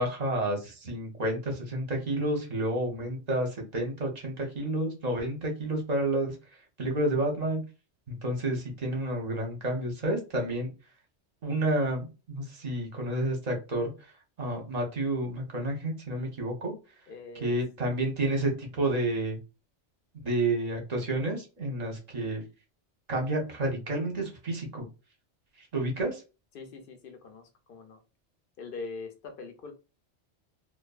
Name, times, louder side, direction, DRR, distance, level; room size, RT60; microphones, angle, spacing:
voice 1, 0.0-6.4 6.8-7.6 8.1-10.7 11.4-13.9 14.4-16.7 17.3-19.4 20.2-22.4 23.1-24.9 25.7-26.2, right 1 dB, 40° right, 0.8 m, -30 dB
voice 2, 17.1-17.5 26.5-28.0 28.6-29.7, left 4 dB, 60° left, 0.7 m, -42 dB
2.5 x 2.3 x 2.3 m
omnidirectional pair, 1.2 m